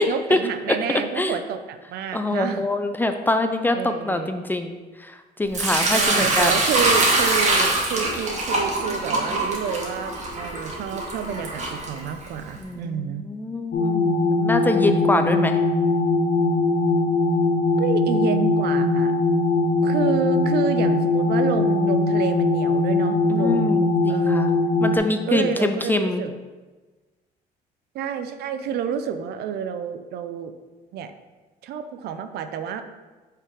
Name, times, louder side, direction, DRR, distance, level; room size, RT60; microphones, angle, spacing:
voice 1, 0.0-2.7 3.7-4.3 5.9-13.2 17.8-19.1 19.8-23.8 24.1-24.6 25.3-26.3 27.9-30.5 30.9-31.1 31.6-32.8, right 7 dB, 70° right, 8 dB, 0.5 m, -29 dB
voice 2, 0.7-1.4 2.1-6.5 12.6-15.6 23.3-24.5 24.8-26.2, left 2 dB, 10° left, 7 dB, 0.4 m, -24 dB
Sink (filling or washing) / Liquid, 5.5-12.5, right 2 dB, 45° right, 1.3 m, -23 dB
sound 1, 13.7-25.0, left 3 dB, 60° left, 1.0 m, -21 dB
5.6 x 3.7 x 4.8 m, 1.3 s
cardioid pair, 110°, 17 cm